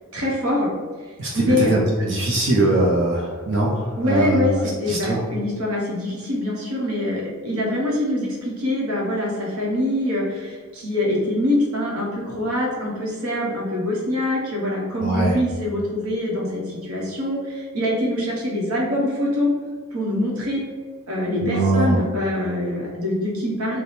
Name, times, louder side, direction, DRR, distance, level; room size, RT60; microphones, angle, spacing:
voice 1, 0.1-0.7 1.3-1.8 4.0-19.5 19.9-20.6 21.1-23.8, left 1 dB, 75° right, -3 dB, 1.1 m, -24 dB
voice 2, 1.2-4.5 4.9-5.2 15.0-15.3 21.4-22.0, right 2 dB, 60° right, -5 dB, 0.6 m, -21 dB
3.3 x 2.2 x 4.2 m, 1.5 s
head